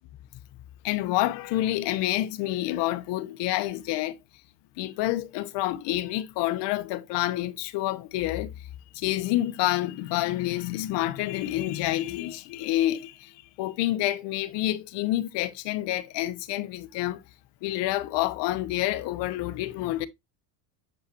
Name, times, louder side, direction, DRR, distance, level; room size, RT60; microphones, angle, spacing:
voice 1, 0.8-4.2 4.8-8.7 8.9-17.2 17.6-20.1, left 15 dB, 60° left, 1.1 m, -28 dB
7.6 x 5.6 x 2.8 m
supercardioid pair, 105°, 47 cm